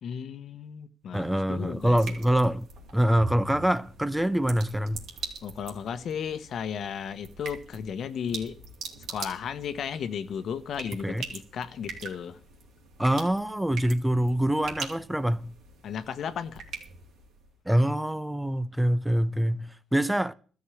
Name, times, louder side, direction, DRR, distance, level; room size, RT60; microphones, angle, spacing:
voice 1, 0.0-2.0 5.4-8.6 9.1-12.4 15.8-16.6, left 7 dB, 65° left, 1.1 m, -34 dB
voice 2, 1.1-2.7 2.9-5.0 11.0-11.3 13.0-15.5 17.7-20.3, right 1 dB, 5° right, 0.7 m, -25 dB
sound 1, 1.1-17.5, right 4 dB, 75° right, 3.3 m, -43 dB
13.0 x 6.3 x 9.7 m
cardioid pair, 90°, 0 cm